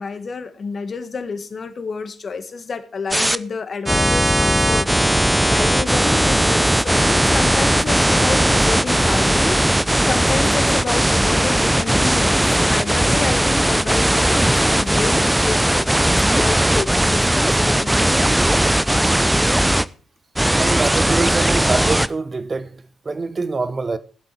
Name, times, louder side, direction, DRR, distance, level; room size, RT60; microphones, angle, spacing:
voice 1, 0.0-4.9 5.2-9.6 10.0-18.3, left 4 dB, 45° left, 1.7 m, -29 dB
sound 1, 3.1-3.4 3.9-19.8 20.4-22.1, right 1 dB, 10° right, 0.7 m, -17 dB
voice 2, 20.6-24.0, right 3 dB, 35° right, 0.9 m, -25 dB
16.5 x 7.8 x 4.5 m
hypercardioid pair, 40°, 0 cm